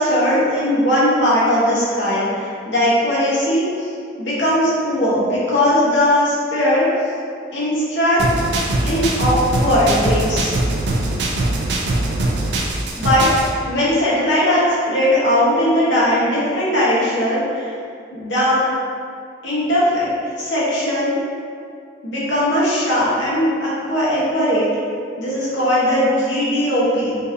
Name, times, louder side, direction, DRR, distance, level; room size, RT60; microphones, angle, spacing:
voice 1, 0.0-3.9 4.2-6.9 7.5-8.2 8.8-10.5 13.0-13.2 13.6-17.7 18.1-18.6 19.4-20.1 20.4-21.1 22.0-24.7 25.2-27.2, equal, 80° left, -8 dB, 1.1 m, -18 dB
sound 1, 8.2-13.5, right 2 dB, 75° right, 0.4 m, -21 dB
3.8 x 2.7 x 2.6 m, 2.3 s
head